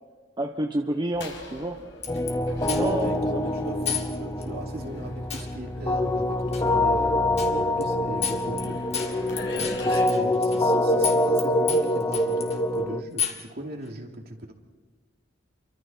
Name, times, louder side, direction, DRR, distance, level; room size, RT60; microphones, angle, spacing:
voice 1, 0.4-1.8 2.6-3.5 9.5-9.8, right 1 dB, 25° right, 4 dB, 1.0 m, -30 dB
sound 1, 1.1-10.1, left 2 dB, 70° left, 5.3 m, -43 dB
sound 2, 2.0-2.3 2.7-3.1 3.9-4.1 4.4-4.5 5.3-5.5 6.5-6.7 7.4-7.5 7.8-7.9 8.2-8.7 8.9-10.7 11.0-11.4 11.7-12.6 13.2-13.5, left 8 dB, 35° left, 2.3 m, -30 dB
sound 3, 2.1-13.0, left 1 dB, 20° left, 1.0 m, -25 dB
voice 2, 2.7-8.8 9.5-14.5, right 1 dB, 55° right, 2 dB, 2.8 m, -38 dB
29.5 x 24.5 x 4.5 m, 1.3 s
head